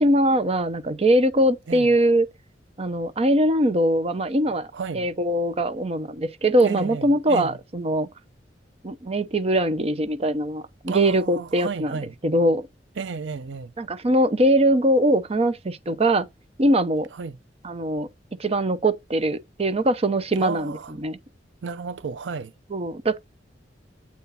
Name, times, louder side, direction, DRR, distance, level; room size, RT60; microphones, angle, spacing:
voice 1, 0.0-2.3 2.8-4.7 4.9-8.1 8.8-12.7 13.8-16.3 16.6-17.1 17.6-18.1 18.4-20.7 21.0-21.2 22.7-23.2, right 1 dB, 35° right, 0.7 m, -22 dB
voice 2, 4.7-5.1 6.6-7.6 10.9-12.1 13.0-13.7 17.2-17.4 20.4-20.9 21.6-22.5, right 5 dB, 90° right, 0.5 m, -33 dB
8.2 x 4.0 x 4.1 m
head